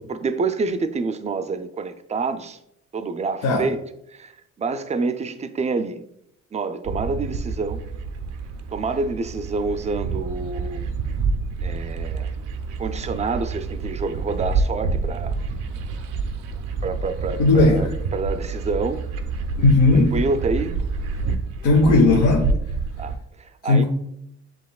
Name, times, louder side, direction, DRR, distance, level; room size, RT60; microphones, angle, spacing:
voice 1, 0.1-2.6 2.9-3.8 4.1-4.3 4.6-6.0 6.5-7.8 8.7-10.9 11.6-12.3 12.8-15.3 16.8-19.0 19.9-20.8 23.0-23.8, right 4 dB, 25° right, 0.4 m, -27 dB
sound 1, 6.8-23.2, right 4 dB, 90° right, 0.5 m, -28 dB
voice 2, 17.4-17.9 19.6-20.1 21.6-22.5 23.7-23.8, left 2 dB, 80° left, 0.8 m, -16 dB
7.6 x 2.9 x 2.3 m
cardioid pair, 90°, 30 cm